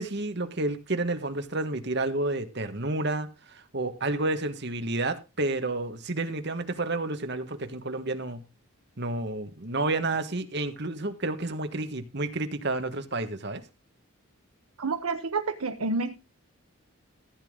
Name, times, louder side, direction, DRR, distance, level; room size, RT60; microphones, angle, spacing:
voice 1, 0.0-8.4 9.0-13.6, right 2 dB, 50° right, 1.6 m, -30 dB
voice 2, 14.8-16.2, right 3 dB, 85° right, 1.0 m, -29 dB
15.0 x 8.5 x 3.8 m
head